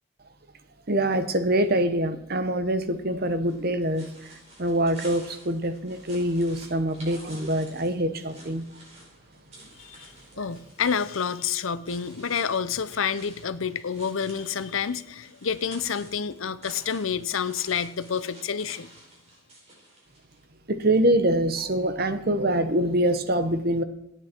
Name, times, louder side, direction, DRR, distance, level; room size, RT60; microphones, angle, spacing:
voice 1, 0.9-4.3 4.6-8.6 10.4-10.5 20.7-23.8, right 1 dB, 45° right, 10 dB, 1.0 m, -24 dB
sound 1, 3.3-20.5, right 1 dB, 30° right, 5.1 m, -50 dB
voice 2, 9.8-18.9, left 6 dB, 80° left, 15 dB, 0.7 m, -29 dB
27.0 x 9.4 x 4.5 m, 0.86 s
head